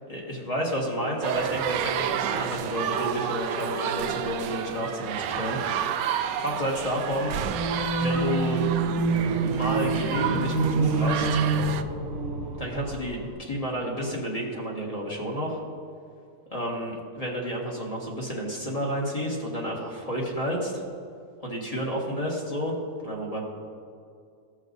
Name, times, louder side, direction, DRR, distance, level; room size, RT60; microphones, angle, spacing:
voice 1, 0.1-6.0 6.4-7.3 8.0-8.7 9.4-11.4 12.6-15.6 16.5-20.8 21.4-22.7 23.0-23.4, equal, 20° left, -3 dB, 1.6 m, -31 dB
sound 1, 1.2-11.8, right 9 dB, 90° right, 1.3 m, -30 dB
sound 2, 7.3-13.3, right 3 dB, 55° right, 1.5 m, -26 dB
17.0 x 6.2 x 2.6 m, 2.3 s
omnidirectional pair, 1.9 m